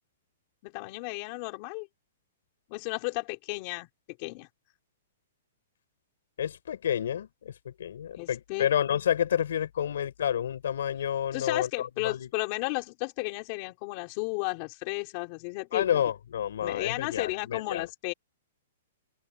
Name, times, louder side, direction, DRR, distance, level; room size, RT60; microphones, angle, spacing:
voice 1, 0.6-1.9 2.7-3.9 4.2-4.5 8.2-8.7 11.3-16.0 16.6-18.1, left 27 dB, 30° left, 4.0 m, -33 dB
voice 2, 6.4-12.3 15.7-17.9, left 9 dB, 70° left, 4.8 m, -29 dB
hypercardioid pair, 170°, 0 cm